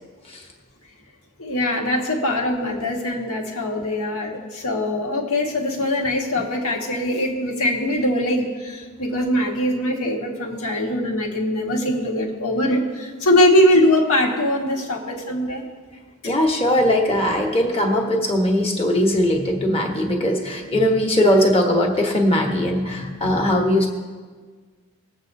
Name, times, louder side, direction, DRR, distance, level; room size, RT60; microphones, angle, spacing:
voice 1, 1.4-15.6 16.2-16.3 23.2-23.4, left 1 dB, 80° left, -1 dB, 1.7 m, -22 dB
voice 2, 16.2-23.9, left 1 dB, 25° left, 1 dB, 1.3 m, -20 dB
21.0 x 8.2 x 2.7 m, 1.5 s
head